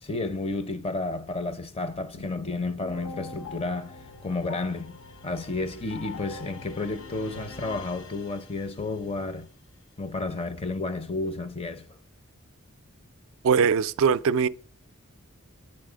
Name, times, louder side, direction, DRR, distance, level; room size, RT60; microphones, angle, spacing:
voice 1, 0.0-4.0 4.2-5.0 5.2-9.5 10.0-12.0, left 2 dB, 25° left, 0.6 m, -31 dB
sound 1, 2.1-8.9, left 3 dB, 60° left, 0.7 m, -43 dB
voice 2, 13.4-14.5, right 6 dB, 65° right, 0.3 m, -21 dB
8.7 x 4.1 x 5.0 m
head